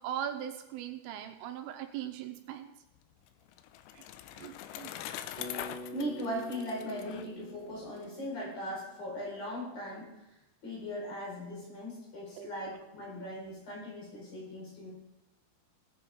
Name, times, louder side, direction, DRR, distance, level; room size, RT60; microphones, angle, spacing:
voice 1, 0.0-2.7 3.9-4.0 4.4-4.9 12.4-12.5 13.2-13.3, right 10 dB, 85° right, 6 dB, 3.2 m, -39 dB
Bicycle, 3.0-8.0, left 11 dB, 85° left, 2.8 m, -43 dB
Bass guitar, 5.4-9.5, left 2 dB, 55° right, 0.5 m, -47 dB
voice 2, 5.9-10.1 10.6-14.9, equal, 45° left, -5 dB, 6.2 m, -39 dB
17.5 x 8.5 x 3.6 m, 0.89 s
omnidirectional pair, 5.9 m